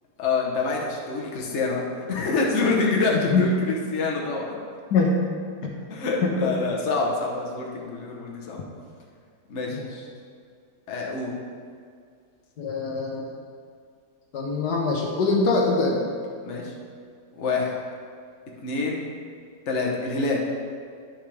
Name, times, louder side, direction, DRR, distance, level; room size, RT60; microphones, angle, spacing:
voice 1, 0.2-4.5 5.9-8.6 9.5-9.8 10.9-11.3 16.4-16.7 17.4-17.7 18.6-19.0 19.7-20.4, left 3 dB, 50° left, -2 dB, 1.2 m, -26 dB
voice 2, 6.2-6.5 9.8-9.9 12.6-13.2 14.3-16.0, left 3 dB, 70° left, 0 dB, 1.4 m, -23 dB
9.9 x 6.4 x 3.3 m, 2.2 s
omnidirectional pair, 1.8 m